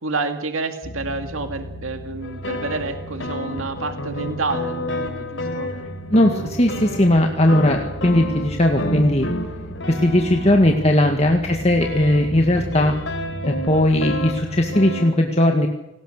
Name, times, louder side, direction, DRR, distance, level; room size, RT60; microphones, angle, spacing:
voice 1, 0.0-5.7 11.0-11.2, right 3 dB, 80° right, 6 dB, 2.1 m, -29 dB
sound 1, 0.8-14.4, equal, 85° left, 2.7 m, -37 dB
sound 2, 1.4-15.0, right 2 dB, 60° right, 1.8 m, -40 dB
sound 3, 2.2-11.0 11.8-15.1, left 1 dB, 60° left, 3.7 m, -30 dB
voice 2, 6.1-9.3 9.9-12.9 13.4-15.7, left 1 dB, 30° left, 3 dB, 1.9 m, -18 dB
29.0 x 19.5 x 6.7 m, 0.97 s
head